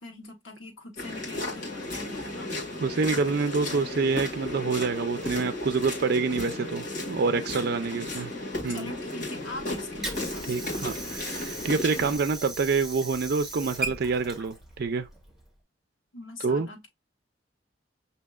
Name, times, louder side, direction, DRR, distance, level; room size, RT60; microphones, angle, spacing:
voice 1, 0.0-2.5 7.9-10.9 16.1-16.9, left 2 dB, 90° left, 1.2 m, -42 dB
sound 1, 1.0-12.2, left 2 dB, 45° left, 1.6 m, -34 dB
voice 2, 2.8-8.3 8.6-8.9 10.5-15.1 16.4-16.7, right 4 dB, 55° right, 0.4 m, -27 dB
Water / Sink (filling or washing), 9.5-15.5, right 2 dB, ahead, 1.1 m, -38 dB
6.3 x 2.7 x 2.3 m
head